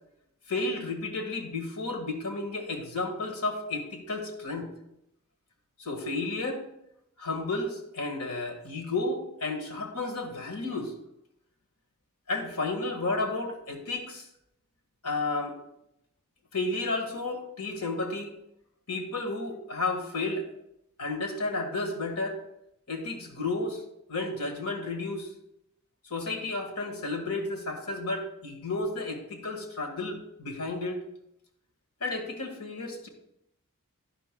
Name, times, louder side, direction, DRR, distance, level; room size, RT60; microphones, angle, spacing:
voice 1, 0.5-4.7 5.8-6.6 7.2-10.9 12.3-14.3 15.0-15.6 16.5-18.3 18.9-20.4 21.0-22.4 22.9-23.8 24.1-25.3 26.1-31.0 32.0-33.1, left 2 dB, 85° left, 4 dB, 1.6 m, -32 dB
11.0 x 11.0 x 2.3 m, 0.81 s
head